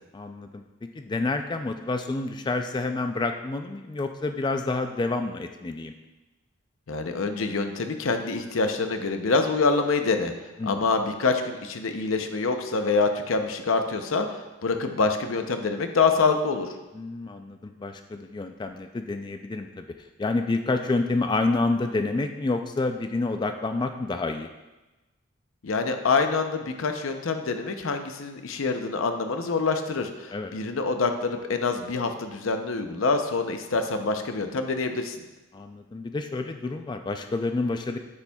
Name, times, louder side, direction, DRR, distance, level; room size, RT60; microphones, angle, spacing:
voice 1, 0.1-0.6 0.9-5.9 10.6-10.8 16.9-19.8 20.2-24.5 30.3-30.5 35.5-38.0, left 3 dB, 20° left, 7 dB, 0.3 m, -28 dB
voice 2, 6.9-10.3 10.6-14.3 14.6-16.7 25.6-35.2, left 4 dB, 80° left, 6 dB, 0.6 m, -26 dB
9.5 x 7.0 x 2.3 m, 1.1 s
head